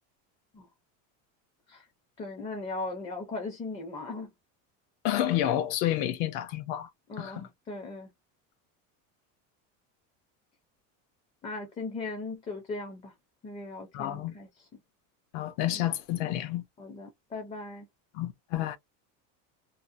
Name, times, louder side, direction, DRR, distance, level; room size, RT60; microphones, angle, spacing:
voice 1, 2.2-4.3 7.1-8.1 11.4-13.1 13.4-14.7 15.7-15.8 16.8-17.9, left 3 dB, 15° left, 0.4 m, -38 dB
voice 2, 5.0-6.9 7.2-7.5 13.9-14.3 15.3-16.6 18.1-18.8, left 12 dB, 65° left, 0.7 m, -29 dB
2.7 x 2.0 x 2.5 m
cardioid pair, 155°, 40 cm